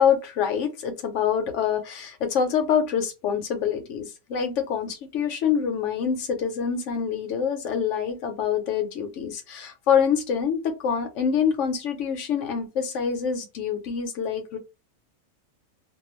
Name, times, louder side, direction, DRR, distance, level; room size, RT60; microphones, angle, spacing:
voice 1, 0.0-14.6, left 7 dB, 65° left, 0.9 m, -25 dB
2.3 x 2.2 x 3.0 m
omnidirectional pair, 1.5 m